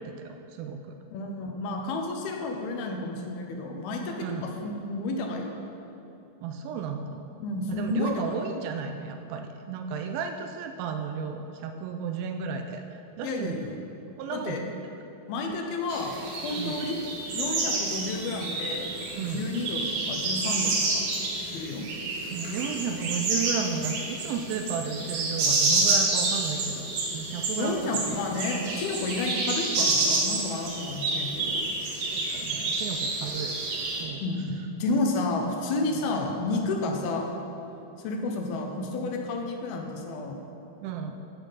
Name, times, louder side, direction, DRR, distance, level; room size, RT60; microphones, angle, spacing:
voice 1, 0.0-0.9 4.2-4.5 6.4-7.2 7.7-13.6 14.2-14.7 16.6-16.8 19.2-19.5 22.3-26.9 27.1-28.0 32.1-33.5 34.0-34.2 34.9-35.1 35.9-36.0 40.8-41.1, right 6 dB, 80° right, 6 dB, 2.2 m, -33 dB
voice 2, 1.1-5.5 7.4-8.4 13.2-13.8 14.3-14.6 15.3-16.2 16.4-17.0 17.3-18.9 19.3-21.0 21.5-21.9 27.6-31.6 34.2-37.3 38.0-40.4, left 3 dB, 80° left, 2 dB, 2.8 m, -31 dB
woodland birdies, 15.9-34.0, right 3 dB, 65° right, 2.6 m, -29 dB
12.5 x 5.8 x 5.5 m, 2.9 s
omnidirectional pair, 4.5 m